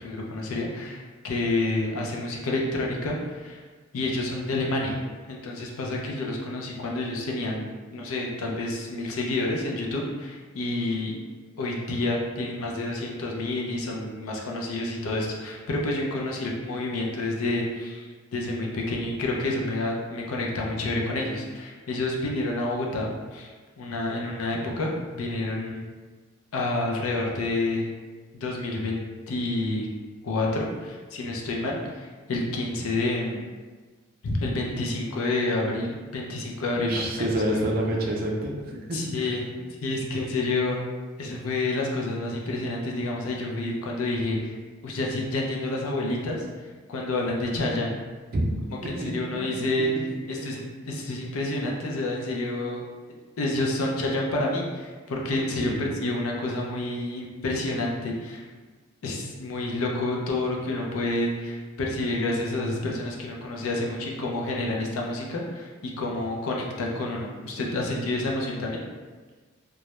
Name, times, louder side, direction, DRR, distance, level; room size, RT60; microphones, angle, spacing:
voice 1, 0.0-3.6 3.9-5.0 5.3-11.2 11.6-25.8 26.5-27.9 28.3-29.0 29.3-29.9 30.2-33.4 34.2-37.3 38.9-39.5 39.8-40.8 41.2-44.5 44.8-46.5 46.9-48.0 48.8-49.9 50.3-52.8 53.4-58.5 59.0-68.8, left 2 dB, 85° left, -1 dB, 0.5 m, -29 dB
voice 2, 36.7-39.3 48.3-48.4 48.8-49.9 50.4-50.5 55.5-55.8, right 1 dB, 45° right, -1 dB, 0.4 m, -29 dB
2.3 x 2.0 x 2.9 m, 1.4 s
head